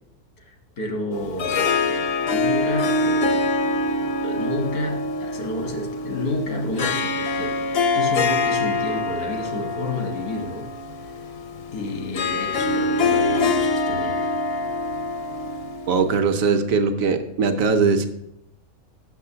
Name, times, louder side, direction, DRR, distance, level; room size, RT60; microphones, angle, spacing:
voice 1, 0.4-2.0 2.3-3.4 4.2-7.6 7.9-10.7 11.0-11.1 11.7-14.3, left 2 dB, 85° left, 3 dB, 1.9 m, -30 dB
Harp, 1.1-16.4, left 3 dB, 55° left, 0.7 m, -25 dB
voice 2, 15.9-18.1, right 5 dB, 70° right, 7 dB, 1.1 m, -20 dB
6.4 x 5.9 x 6.7 m, 0.81 s
omnidirectional pair, 1.6 m